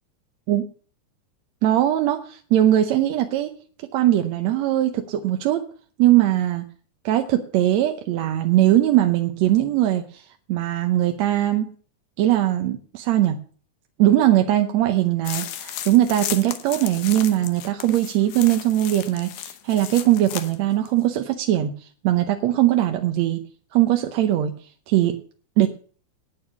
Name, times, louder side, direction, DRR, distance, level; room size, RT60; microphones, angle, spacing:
voice 1, 1.6-3.5 3.9-5.6 6.0-6.6 7.1-11.7 12.2-13.4 14.0-23.4 23.7-24.5 24.9-25.2 25.6-25.7, right 13 dB, 70° right, 5 dB, 1.9 m, -20 dB
sound 1, 15.2-20.6 20.9-21.0, left 11 dB, 80° left, 2.5 m, -34 dB
9.2 x 9.0 x 7.0 m, 0.43 s
omnidirectional pair, 3.6 m